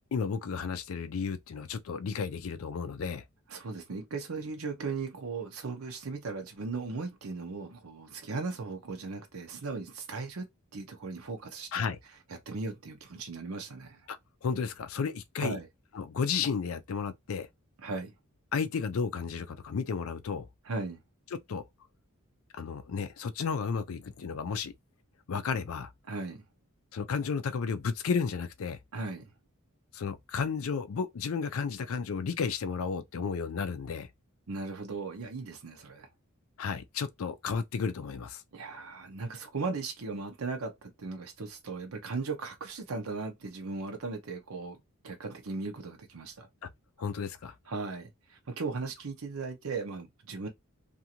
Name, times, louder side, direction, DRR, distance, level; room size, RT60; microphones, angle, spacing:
voice 1, 0.1-3.2 11.7-12.0 14.1-14.2 14.4-15.6 15.9-17.5 18.5-20.5 21.3-21.6 22.5-24.7 25.3-25.9 26.9-28.8 29.9-34.1 36.6-38.4 47.0-47.5, left 5 dB, 70° left, 0.4 m, -33 dB
voice 2, 3.5-10.4 10.7-11.8 12.5-14.0 15.4-15.7 17.8-18.1 20.7-21.0 26.1-26.4 28.9-29.3 34.5-36.1 38.5-44.8 45.0-46.5 47.7-50.5, right 3 dB, 75° right, 0.7 m, -37 dB
2.6 x 2.5 x 2.8 m
head